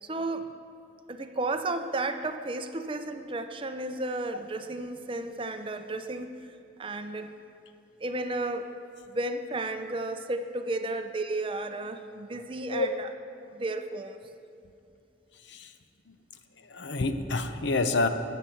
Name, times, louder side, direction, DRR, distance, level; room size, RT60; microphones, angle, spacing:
voice 1, 0.0-0.5 1.1-6.4 6.8-7.3 8.0-8.7 9.1-13.1 13.5-14.2, right 2 dB, 30° right, 8 dB, 0.5 m, -33 dB
voice 2, 16.7-18.1, left 3 dB, 70° left, 9 dB, 0.7 m, -27 dB
11.5 x 7.4 x 7.8 m, 2.5 s
head